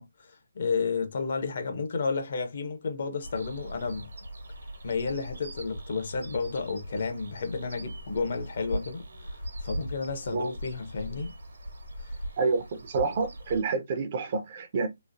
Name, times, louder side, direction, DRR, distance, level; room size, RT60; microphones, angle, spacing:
voice 1, 0.0-4.1 4.8-11.3 12.0-12.2, left 4 dB, 50° left, 0.8 m, -32 dB
sound 1, 3.2-13.6, right 1 dB, 70° right, 1.1 m, -40 dB
voice 2, 12.4-14.9, right 4 dB, 40° right, 0.6 m, -28 dB
3.1 x 2.0 x 2.6 m
hypercardioid pair, 160°, 0 cm